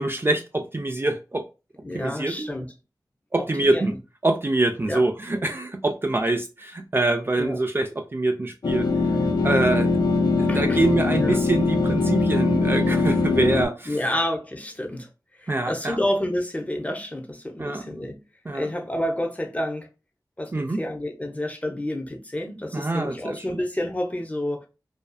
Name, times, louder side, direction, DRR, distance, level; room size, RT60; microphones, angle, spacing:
voice 1, 0.0-1.4 1.9-2.5 3.3-3.9 4.2-8.9 9.4-9.9 10.4-14.0 15.5-16.0 17.6-17.8 18.5-18.7 20.5-20.8 22.7-23.5, right 2 dB, 30° right, 0.3 m, -25 dB
voice 2, 1.8-2.7 3.4-3.9 4.9-5.0 7.4-7.6 10.5-10.8 11.2-11.4 13.9-15.1 15.4-18.2 18.5-19.9 20.4-24.7, left 1 dB, 20° left, 0.6 m, -29 dB
sound 1, 8.6-13.7, left 3 dB, 65° left, 0.5 m, -22 dB
2.5 x 2.3 x 2.2 m
wide cardioid pair, 45°, 8 cm